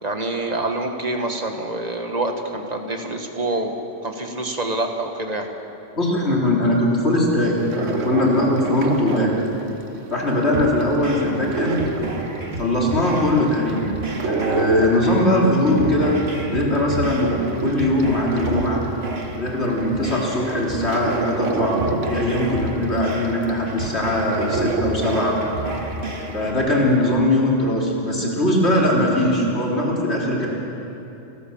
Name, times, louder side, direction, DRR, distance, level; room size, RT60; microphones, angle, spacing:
voice 1, 0.0-3.8 4.0-5.5, right 2 dB, 30° right, 4 dB, 1.8 m, -26 dB
voice 2, 6.0-9.3 10.1-11.8 12.6-13.9 14.2-16.1 16.4-18.8 19.3-21.8 22.1-25.4 26.3-30.5, left 1 dB, 55° left, -3 dB, 3.5 m, -20 dB
sound 1, 7.6-10.2 10.6-12.9 13.3-15.9 16.4-19.5 20.0-20.1 20.5-25.7 26.0-26.1, right 4 dB, 75° right, 1.6 m, -28 dB
sound 2, 10.5-26.5, right 1 dB, 55° right, 2.2 m, -31 dB
29.5 x 12.5 x 7.3 m, 2.9 s
omnidirectional pair, 1.3 m